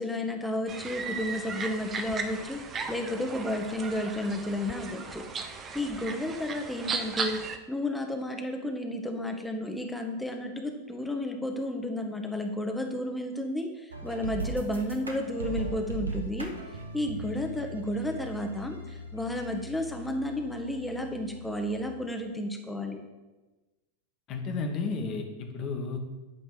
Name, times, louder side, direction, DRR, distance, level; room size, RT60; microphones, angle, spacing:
voice 1, 0.0-2.6 2.9-5.2 5.7-7.4 7.7-13.7 14.0-16.5 16.9-23.0, left 1 dB, 5° left, 3 dB, 0.9 m, -32 dB
sound 1, 0.7-7.6, right 5 dB, 25° right, 0.7 m, -36 dB
sound 2, 13.9-21.9, right 2 dB, 80° right, 0.9 m, -39 dB
voice 2, 24.3-26.0, left 4 dB, 35° left, 3 dB, 1.2 m, -32 dB
8.7 x 3.4 x 6.6 m, 1.1 s
figure-of-eight pair, 90°, 0 cm